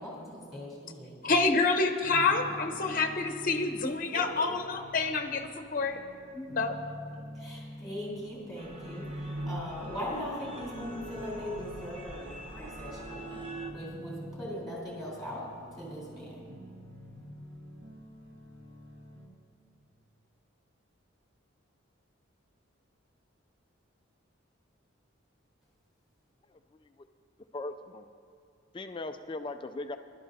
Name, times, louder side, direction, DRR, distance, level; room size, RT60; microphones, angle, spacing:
voice 1, 0.0-1.6 2.1-2.5 4.1-4.2 7.3-15.4 15.8-16.4, equal, ahead, -6 dB, 3.6 m, -40 dB
voice 2, 1.2-6.0 6.3-6.7, left 3 dB, 40° left, 5 dB, 0.8 m, -28 dB
sound 1, 2.0-19.3, equal, 60° right, 1.8 m, -49 dB
sound 2, 8.6-13.7, right 1 dB, 30° right, 0.9 m, -41 dB
voice 3, 26.5-26.9 27.5-28.1 28.7-30.0, left 2 dB, 25° left, 8 dB, 0.3 m, -39 dB
21.5 x 12.0 x 2.7 m, 2.4 s
head